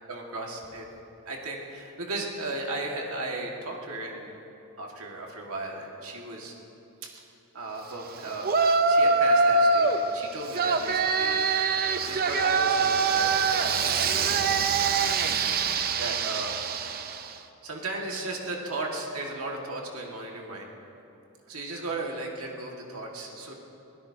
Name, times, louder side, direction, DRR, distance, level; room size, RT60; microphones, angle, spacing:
voice 1, 0.1-0.8 1.3-4.4 4.8-6.5 7.0-7.2 7.5-8.5 8.8-11.4 12.1-16.5 17.6-20.7 21.5-23.5, right 2 dB, 75° right, -1 dB, 2.0 m, -36 dB
Yell, 8.4-10.0 10.5-17.3, right 4 dB, 45° right, 0.7 m, -24 dB
24.0 x 16.5 x 2.9 m, 3.0 s
head